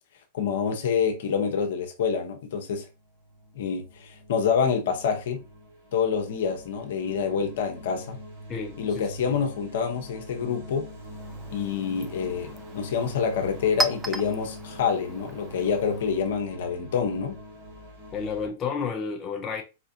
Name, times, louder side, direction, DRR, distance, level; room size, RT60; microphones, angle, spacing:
voice 1, 0.3-2.8 3.5-5.4 5.9-8.2 8.8-10.9 11.5-17.4, left 6 dB, 65° left, 0.9 m, -27 dB
sound 1, 2.9-18.5, equal, 55° right, 2.0 m, -44 dB
voice 2, 8.5-9.4 18.1-19.6, left 5 dB, 30° left, 0.6 m, -32 dB
Chink clink, 10.9-16.4, right 1 dB, 15° right, 0.4 m, -36 dB
4.3 x 2.4 x 2.8 m
hypercardioid pair, 100°, 0 cm